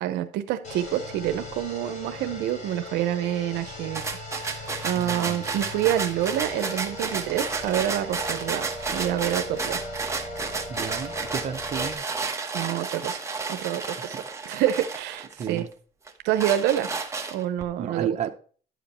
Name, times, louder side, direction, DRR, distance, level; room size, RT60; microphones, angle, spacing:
voice 1, 0.0-4.0 4.4-8.7 8.9-9.8 12.5-13.2 13.5-14.2 14.5-15.7 16.2-16.9 17.3-18.3, right 12 dB, 85° right, 10 dB, 0.7 m, -27 dB
sound 1, 0.6-11.9, left 1 dB, 45° left, 3.5 m, -38 dB
sound 2, 3.9-15.6 16.1-17.6, right 4 dB, 15° right, 1.2 m, -32 dB
voice 2, 4.9-5.4 10.7-12.1 14.1-14.2 15.4-15.7 17.8-18.3, right 8 dB, 40° right, 7 dB, 0.9 m, -32 dB
11.0 x 5.1 x 4.3 m, 0.42 s
cardioid pair, 110°, 17 cm